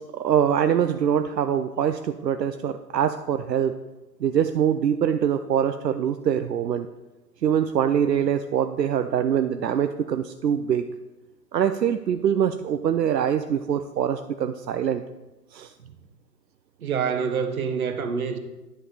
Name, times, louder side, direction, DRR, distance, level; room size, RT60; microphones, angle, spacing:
voice 1, 0.0-3.8 4.2-6.9 7.4-10.9 11.5-15.0 15.5-15.7, right 9 dB, 80° right, 0.6 m, -24 dB
voice 2, 16.8-18.4, right 6 dB, 60° right, 1.1 m, -26 dB
9.9 x 5.1 x 4.2 m
figure-of-eight pair, 130°, 50 cm